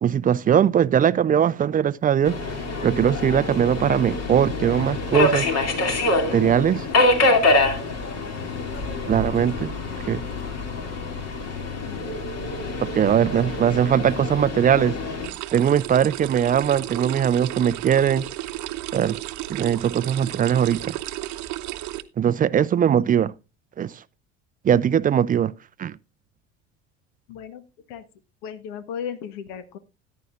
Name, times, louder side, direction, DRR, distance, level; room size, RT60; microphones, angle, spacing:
voice 1, 0.0-2.4 2.8-5.5 6.3-6.9 9.1-9.8 10.1-10.2 12.8-15.0 15.5-18.2 18.9-19.2 19.5-21.0 22.2-23.3 23.8-23.9 24.6-25.5 25.8-26.0, right 9 dB, 25° right, 0.4 m, -20 dB
Subway metro underground, 2.2-15.3, left 2 dB, 45° left, 2.6 m, -25 dB
voice 2, 11.8-12.2 13.4-13.8 27.3-27.6 27.9-28.0 28.4-29.8, left 8 dB, 65° left, 1.3 m, -36 dB
sound 1, 15.2-22.0, right 15 dB, 55° right, 0.9 m, -33 dB
14.0 x 10.0 x 2.5 m
hypercardioid pair, 70°, 35 cm